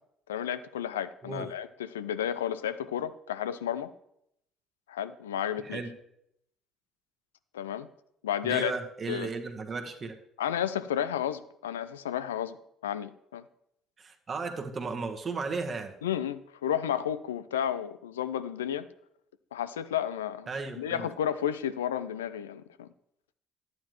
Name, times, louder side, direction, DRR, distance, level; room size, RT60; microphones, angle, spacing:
voice 1, 0.3-3.9 4.9-5.8 7.5-7.9 8.2-8.7 9.1-9.3 10.4-12.6 12.8-13.4 16.0-18.9 19.5-20.5 20.8-22.9, left 10 dB, 90° left, 14 dB, 0.4 m, -32 dB
voice 2, 5.6-5.9 8.4-10.1 14.0-15.9 20.5-21.1, right 4 dB, 40° right, 4 dB, 1.2 m, -35 dB
11.5 x 9.3 x 3.1 m, 0.76 s
hypercardioid pair, 55°, 0 cm